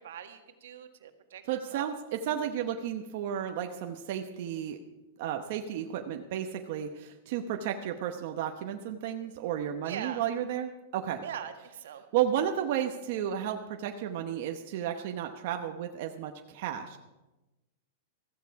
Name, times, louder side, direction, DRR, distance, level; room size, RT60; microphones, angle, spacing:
voice 1, 0.0-1.4 1.7-1.9 9.8-10.2 11.2-12.0, right 9 dB, 75° right, 7 dB, 1.6 m, -41 dB
voice 2, 1.5-4.8 5.2-11.2 12.1-17.0, right 10 dB, 45° right, 4 dB, 0.9 m, -33 dB
15.5 x 14.5 x 4.7 m, 1.0 s
supercardioid pair, 175°, 0 cm